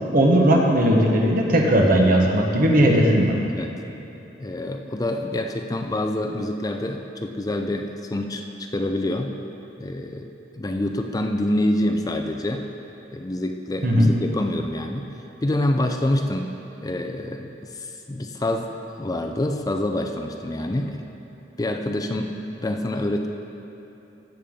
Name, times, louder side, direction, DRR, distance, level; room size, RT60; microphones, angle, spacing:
voice 1, 0.1-3.3 13.8-14.1, equal, 50° right, 0 dB, 1.2 m, -17 dB
voice 2, 4.4-9.3 9.8-10.3 10.6-12.6 13.1-15.1 15.4-16.5 16.8-21.0 21.6-23.3, left 1 dB, 20° left, 4 dB, 0.4 m, -26 dB
15.5 x 7.1 x 3.7 m, 3.0 s
head